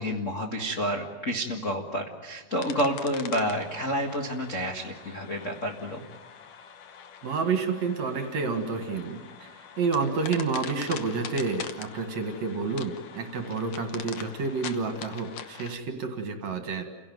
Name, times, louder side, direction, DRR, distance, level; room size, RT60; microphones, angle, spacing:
voice 1, 0.0-6.0, equal, 40° left, -1 dB, 1.1 m, -29 dB
sound 1, 2.5-15.8, left 7 dB, 65° left, 1.5 m, -43 dB
voice 2, 7.2-9.5 9.8-16.8, right 4 dB, 55° right, 6 dB, 2.7 m, -29 dB
29.0 x 17.5 x 9.3 m, 1.3 s
omnidirectional pair, 4.3 m